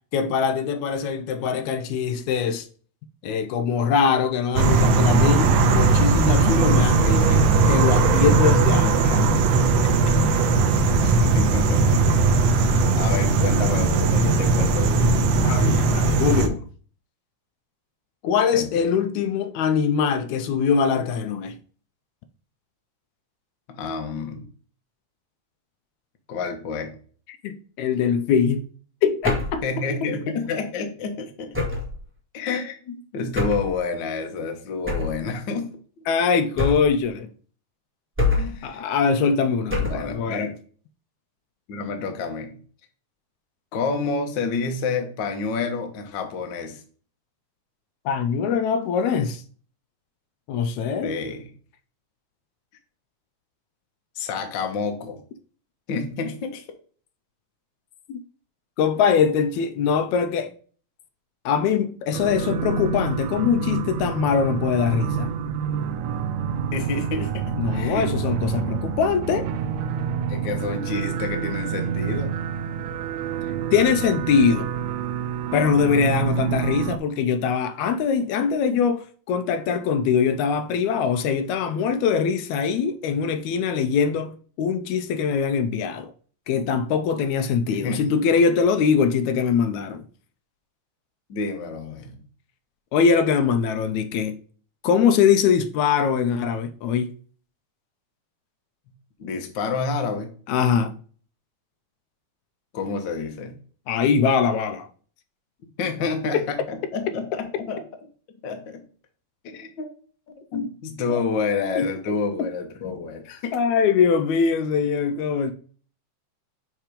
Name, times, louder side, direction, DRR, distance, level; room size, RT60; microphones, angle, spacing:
voice 1, 0.1-2.7 3.2-9.3 9.8-10.2 15.4-16.6 18.2-21.6 27.4-28.7 29.0-29.6 36.1-37.3 38.6-40.5 48.1-49.4 50.5-51.2 58.1-58.2 58.8-60.5 61.5-65.3 67.5-69.5 73.7-74.7 75.5-86.1 86.5-90.1 92.9-94.4 94.8-97.1 100.5-101.0 103.9-104.9 106.3-106.4 110.5-110.7 111.1-111.2 111.8-111.9 112.4-112.5 113.5-115.5, left 6 dB, 80° left, 1.9 m, -22 dB
sound 1, 4.6-16.5, right 3 dB, 70° right, 1.7 m, -18 dB
voice 2, 11.0-15.2 18.5-18.9 23.7-24.5 26.3-26.9 29.6-31.7 32.3-35.7 38.2-38.8 39.8-40.5 41.7-42.6 43.7-46.8 51.0-51.5 54.1-55.2 55.9-56.6 66.7-68.1 68.6-68.8 70.3-72.4 87.7-88.1 91.3-92.2 99.2-100.3 102.7-103.6 105.8-107.8 108.4-108.8 109.4-109.9 110.5-113.6, left 4 dB, 60° left, 1.2 m, -29 dB
sound 2, 29.2-29.6 31.5-32.0 33.3-33.7 34.9-35.2 36.6-37.0 38.2-38.6 39.7-40.1, left 3 dB, 15° right, 0.5 m, -25 dB
sound 3, 62.1-77.0, right 8 dB, 85° right, 2.0 m, -28 dB
7.2 x 3.5 x 5.0 m
omnidirectional pair, 3.5 m